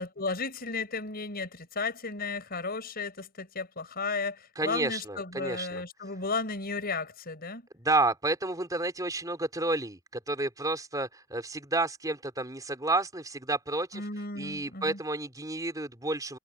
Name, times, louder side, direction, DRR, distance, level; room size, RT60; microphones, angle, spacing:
voice 1, 0.0-7.7 13.9-15.0, left 4 dB, 45° left, 5.5 m, -34 dB
voice 2, 4.6-5.8 7.7-14.0 14.3-16.4, right 2 dB, 15° right, 4.2 m, -30 dB
head